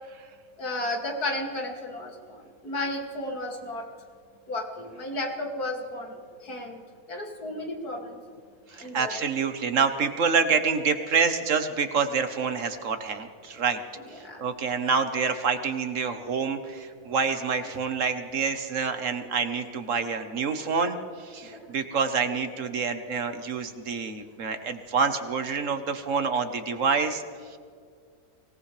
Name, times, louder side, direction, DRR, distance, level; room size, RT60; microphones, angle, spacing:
voice 1, 0.6-3.8 4.5-6.1 6.4-6.8 7.1-8.2 8.8-9.2 14.2-14.4 21.4-21.6, left 1 dB, 85° left, 0 dB, 3.0 m, -33 dB
voice 2, 8.7-13.8 14.1-27.2 27.5-27.6, right 5 dB, 60° right, 8 dB, 1.4 m, -27 dB
24.0 x 18.0 x 3.3 m, 2.2 s
omnidirectional pair, 1.6 m